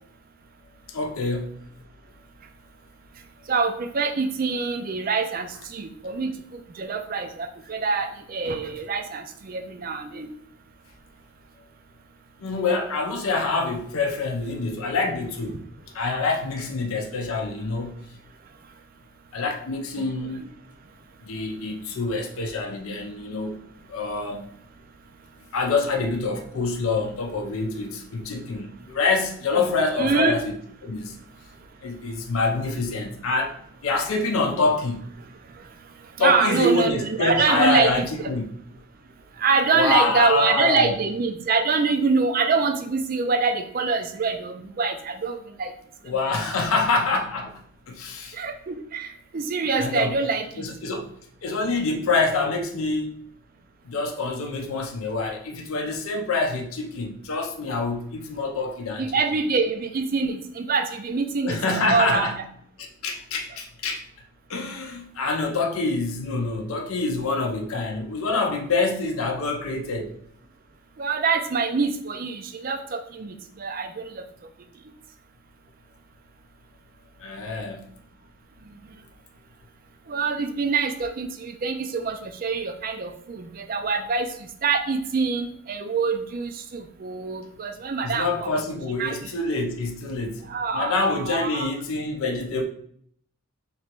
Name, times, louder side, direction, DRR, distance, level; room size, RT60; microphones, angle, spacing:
voice 1, 0.9-1.5 12.4-15.6 15.9-18.0 19.3-20.5 21.3-23.6 23.9-24.5 25.5-30.4 30.8-31.1 31.8-33.5 33.8-35.1 36.2-38.4 39.7-40.9 46.0-47.6 47.9-48.4 49.8-50.1 50.6-51.1 51.4-53.1 53.8-59.1 61.4-62.4 63.0-64.0 64.5-70.1 77.2-77.9 88.0-90.4 90.7-92.7, left 3 dB, 70° left, 3 dB, 0.5 m, -26 dB
voice 2, 3.5-10.3 20.0-20.1 20.3-20.5 29.6-30.3 35.6-35.7 36.2-38.1 39.4-45.7 48.3-50.7 59.0-62.3 71.0-74.2 80.1-88.5 89.0-89.2 90.5-91.7, right 4 dB, 40° right, 7 dB, 0.4 m, -25 dB
3.3 x 2.9 x 4.4 m, 0.64 s
head